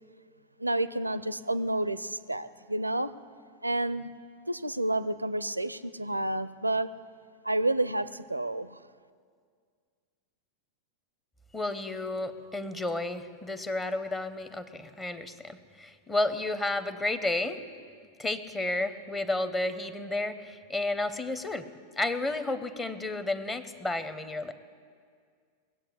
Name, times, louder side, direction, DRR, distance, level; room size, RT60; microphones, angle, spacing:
voice 1, 0.6-3.1 3.6-4.1 4.5-6.9 7.4-8.8, right 1 dB, 85° right, 15 dB, 0.4 m, -30 dB
voice 2, 11.5-17.6 18.2-21.7 22.0-24.5, left 2 dB, 15° left, 11 dB, 0.8 m, -32 dB
20.5 x 7.9 x 8.5 m, 2.1 s
figure-of-eight pair, 90°, 0 cm